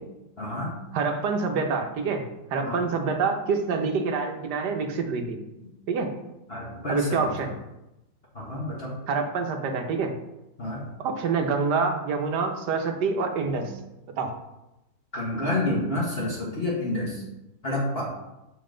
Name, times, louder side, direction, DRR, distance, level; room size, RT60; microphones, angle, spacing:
voice 1, 0.4-0.8 2.6-2.9 6.5-7.2 8.3-8.9 10.6-10.8 13.4-13.6 15.1-17.2 17.6-18.0, left 1 dB, 35° left, -5 dB, 1.4 m, -29 dB
voice 2, 0.9-5.4 5.9-6.1 6.9-7.5 9.1-10.1 11.0-13.7 14.2-14.3, right 4 dB, 65° right, 4 dB, 1.4 m, -26 dB
7.4 x 5.1 x 3.8 m, 0.95 s
omnidirectional pair, 2.0 m